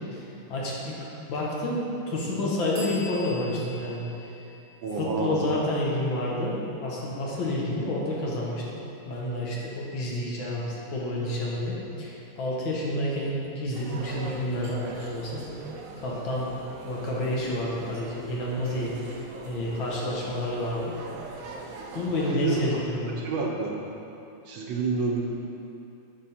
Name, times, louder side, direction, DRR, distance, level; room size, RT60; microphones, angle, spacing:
voice 1, 0.1-1.0 1.3-4.0 5.0-6.5 6.8-8.8 9.1-10.6 10.9-15.4 16.0-16.5 16.8-18.9 19.5-20.9 22.0-23.1, left 1 dB, 65° left, -4 dB, 1.9 m, -29 dB
sound 1, 2.7-6.3, left 2 dB, 25° right, 1.1 m, -45 dB
voice 2, 4.8-5.4 22.3-22.8 23.2-23.7 24.5-25.2, right 4 dB, 70° right, -1 dB, 1.6 m, -28 dB
sound 2, 13.7-22.3, right 3 dB, 85° right, 0.7 m, -41 dB
8.5 x 6.2 x 4.3 m, 2.8 s
omnidirectional pair, 2.4 m